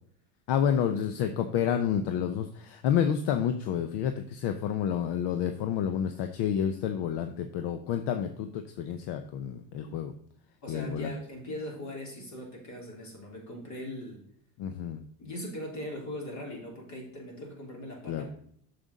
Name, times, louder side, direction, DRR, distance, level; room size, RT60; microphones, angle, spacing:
voice 1, 0.5-10.1 10.7-11.2 14.6-15.0 18.1-18.3, left 8 dB, 65° left, 8 dB, 0.8 m, -29 dB
voice 2, 10.6-14.2 15.2-18.3, left 1 dB, 40° left, -1 dB, 3.4 m, -40 dB
7.3 x 7.0 x 4.0 m, 0.63 s
supercardioid pair, 120°, 45 cm